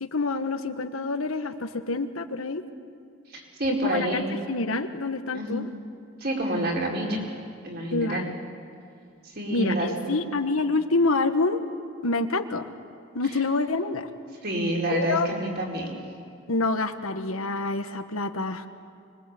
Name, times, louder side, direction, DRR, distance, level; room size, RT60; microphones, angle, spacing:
voice 1, 0.0-2.6 3.7-5.7 7.9-8.3 9.5-11.6 12.0-12.7 13.1-14.1 14.9-15.3 16.5-18.7, left 3 dB, 80° left, 8 dB, 1.4 m, -27 dB
voice 2, 3.3-4.3 5.3-5.6 6.2-7.2 7.6-8.3 9.3-10.2 14.4-15.9, right 1 dB, 45° right, -1 dB, 4.8 m, -28 dB
25.0 x 22.0 x 8.3 m, 2.4 s
head